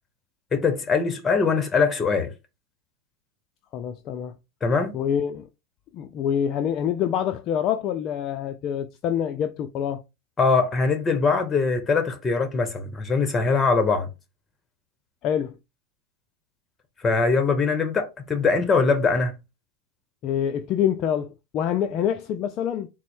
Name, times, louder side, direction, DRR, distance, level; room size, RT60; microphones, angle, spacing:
voice 1, 0.5-2.3 4.6-4.9 10.4-14.1 17.0-19.3, left 4 dB, 20° left, 1.1 m, -22 dB
voice 2, 3.7-4.3 4.9-5.5 5.9-10.0 15.2-15.5 20.2-22.9, left 9 dB, 45° left, 0.4 m, -26 dB
4.1 x 2.0 x 4.3 m
hypercardioid pair, 105°, 0 cm